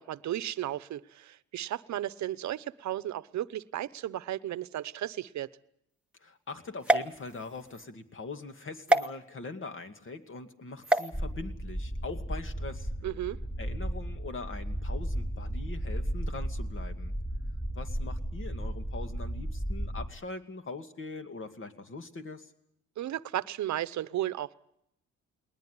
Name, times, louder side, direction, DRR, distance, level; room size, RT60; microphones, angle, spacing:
voice 1, 0.0-5.5 13.0-13.4 23.0-24.6, right 13 dB, 65° right, 15 dB, 0.9 m, -34 dB
voice 2, 6.2-12.9 13.6-17.2 17.8-22.5, left 3 dB, 40° left, 7 dB, 2.5 m, -42 dB
sound 1, 6.8-7.9 8.9-9.1 10.8-11.1, right 1 dB, 5° right, 1.1 m, -26 dB
sound 2, 11.1-20.1, equal, 15° left, 3.2 m, -34 dB
21.0 x 19.5 x 9.7 m, 0.74 s
cardioid pair, 90°, 30 cm